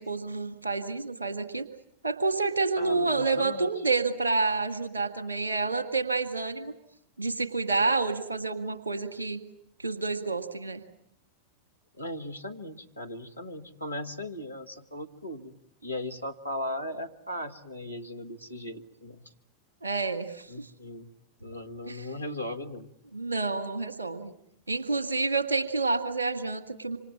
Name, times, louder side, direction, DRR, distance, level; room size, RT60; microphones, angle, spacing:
voice 1, 0.0-1.6 2.0-6.7 7.2-9.4 9.8-10.8 19.8-20.7 21.9-22.1 23.1-24.3 24.7-27.0, right 3 dB, 75° right, 9 dB, 1.9 m, -29 dB
voice 2, 2.8-3.7 12.0-15.5 15.8-19.3 20.5-21.1 21.4-22.9, left 1 dB, 85° left, 6 dB, 1.6 m, -37 dB
27.0 x 26.0 x 7.4 m, 0.71 s
figure-of-eight pair, 90°, 0 cm